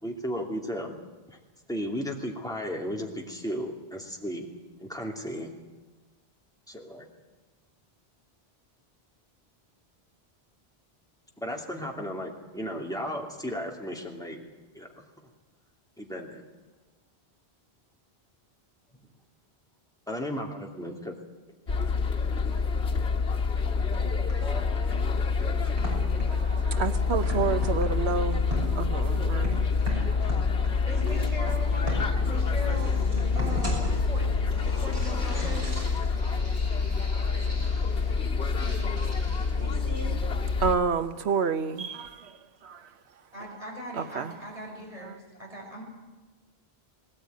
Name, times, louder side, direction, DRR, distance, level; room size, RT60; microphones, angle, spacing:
voice 1, 0.0-0.9 1.3-1.4 1.7-4.5 4.8-5.5 6.7-7.1 11.4-14.5 14.7-15.0 16.0-16.5 20.1-21.2 24.0-24.6, equal, 5° left, 2.7 m, -35 dB
sound 1, 21.7-40.7, left 4 dB, 90° left, 2.0 m, -27 dB
sound 2, 24.2-40.2, equal, 65° right, 6.6 m, -40 dB
voice 2, 26.3-29.6 29.9-30.2 30.6-30.7 40.6-42.4 42.6-42.9 44.0-44.3, right 5 dB, 85° right, 1.2 m, -30 dB
voice 3, 30.9-33.0 33.3-35.8 43.3-45.8, equal, 35° right, 6.3 m, -39 dB
19.5 x 18.5 x 9.4 m
omnidirectional pair, 1.1 m